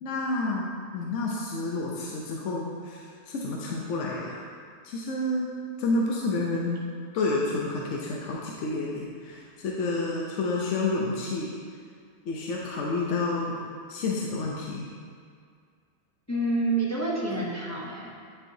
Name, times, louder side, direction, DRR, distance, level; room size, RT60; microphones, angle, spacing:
voice 1, 0.0-4.4 4.8-5.5 5.8-6.8 7.1-11.5 12.3-13.6 13.9-14.9, left 2 dB, 65° left, -3 dB, 0.9 m, -29 dB
voice 2, 16.3-18.2, right 2 dB, 20° left, -4 dB, 0.4 m, -28 dB
9.6 x 4.6 x 2.7 m, 2.1 s
omnidirectional pair, 1.5 m